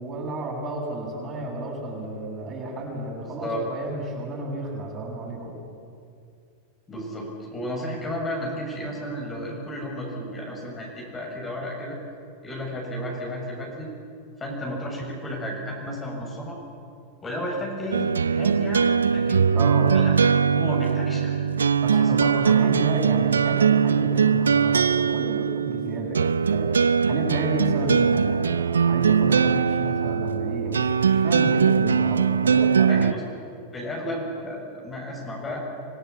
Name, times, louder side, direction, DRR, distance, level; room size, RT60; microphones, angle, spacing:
voice 1, 0.0-5.5 19.5-19.9 21.8-33.1, right 2 dB, 35° right, -1 dB, 7.1 m, -32 dB
voice 2, 6.9-12.0 12.4-13.9 14.4-16.6 17.2-19.5 19.9-20.3 20.6-21.5 21.9-22.7 32.9-33.2 33.7-35.6, equal, 25° left, -1 dB, 6.9 m, -33 dB
sound 1, 17.9-33.1, right 6 dB, 90° right, 0.4 m, -21 dB
25.5 x 16.5 x 8.3 m, 2.4 s
hypercardioid pair, 95°, 0 cm